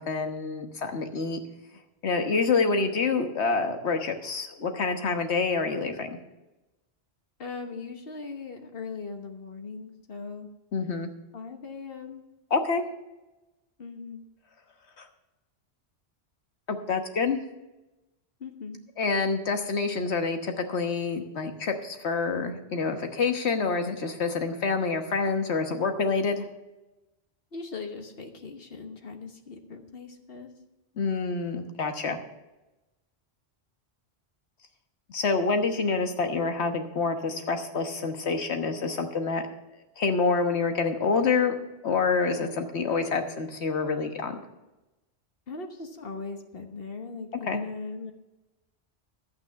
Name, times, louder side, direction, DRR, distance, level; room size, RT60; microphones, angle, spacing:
voice 1, 0.0-1.4 2.0-6.2 10.7-11.1 12.5-12.8 15.0-15.1 16.7-17.4 19.0-26.4 31.0-32.2 35.1-39.4 40.0-41.5 41.8-44.4 47.5-47.6, left 4 dB, 80° left, 6 dB, 1.5 m, -27 dB
voice 2, 7.4-10.5 11.3-12.2 13.8-14.3 18.4-18.8 27.5-30.5 45.5-48.1, left 4 dB, 60° left, 5 dB, 1.4 m, -39 dB
11.5 x 8.8 x 5.7 m, 1.0 s
omnidirectional pair, 1.1 m